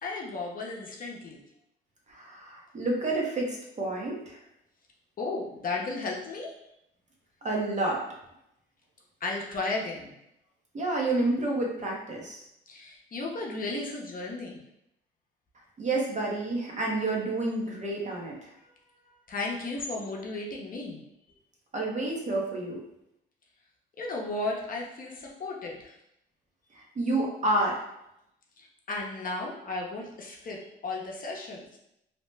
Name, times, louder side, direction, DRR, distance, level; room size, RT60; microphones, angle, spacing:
voice 1, 0.0-1.4 5.2-6.5 9.2-10.1 12.7-14.6 19.3-21.0 24.0-25.9 28.6-31.8, left 3 dB, 45° left, -1 dB, 0.7 m, -34 dB
voice 2, 2.1-4.4 7.4-8.0 10.7-12.4 15.8-18.5 21.7-22.8 26.7-27.8, right 2 dB, 35° right, -1 dB, 0.8 m, -29 dB
2.8 x 2.1 x 3.2 m, 0.81 s
cardioid pair, 90°, 20 cm